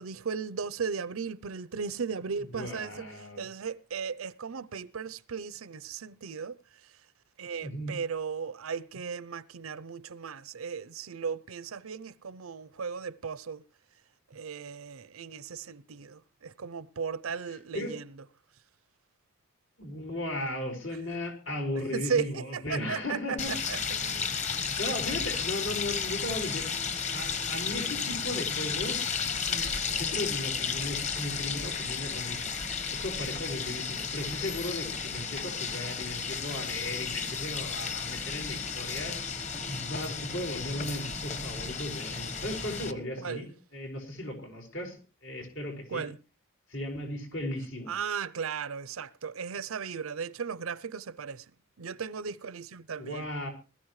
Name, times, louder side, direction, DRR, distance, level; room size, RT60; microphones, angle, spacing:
voice 1, 0.0-3.1 3.4-6.6 7.4-13.6 14.3-18.0 21.9-24.3 43.2-43.5 45.9-46.2 47.9-51.4 51.8-53.3, right 6 dB, 85° right, 0.6 m, -36 dB
voice 2, 2.5-3.5 7.6-7.9 15.5-15.7 17.7-18.0 19.8-23.6 24.5-26.8 27.1-29.1 29.5-32.5 32.9-39.2 39.6-46.1 46.7-47.9 53.0-53.5, left 1 dB, 80° left, 4.9 m, -36 dB
sound 1, 23.4-42.9, left 6 dB, 35° left, 1.2 m, -33 dB
20.0 x 14.5 x 3.2 m
head